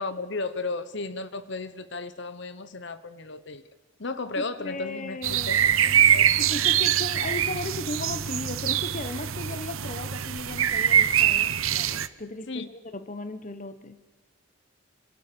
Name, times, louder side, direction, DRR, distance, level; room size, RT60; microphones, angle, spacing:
voice 1, 0.0-3.6 4.0-5.6 6.1-6.5 12.5-12.7, left 3 dB, 60° left, 13 dB, 1.2 m, -34 dB
voice 2, 4.4-14.0, left 2 dB, 35° left, 11 dB, 1.2 m, -37 dB
sound 1, 5.2-12.1, right 9 dB, 80° right, 1.0 m, -23 dB
27.5 x 25.5 x 7.0 m, 1.2 s
head